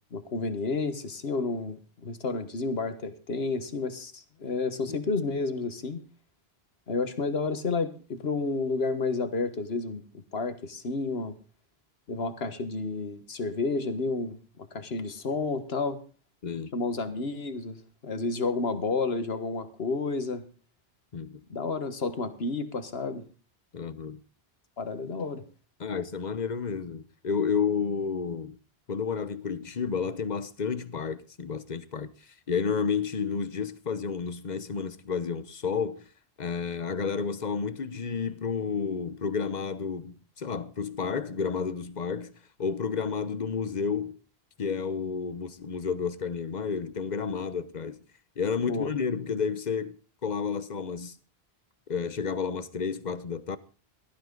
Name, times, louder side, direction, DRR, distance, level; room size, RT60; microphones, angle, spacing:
voice 1, 0.1-6.0 6.9-11.3 12.1-16.0 16.7-20.4 21.5-23.2 24.8-25.4 48.6-48.9, left 3 dB, 75° left, 1.7 m, -31 dB
voice 2, 16.4-16.8 21.1-21.4 23.7-24.2 25.8-28.6 28.9-32.1 32.5-36.1 36.4-42.3 42.6-44.2 44.6-48.0 48.4-49.9 50.2-51.1 51.9-53.6, left 6 dB, 45° left, 1.0 m, -31 dB
17.5 x 13.0 x 3.9 m
omnidirectional pair, 1.1 m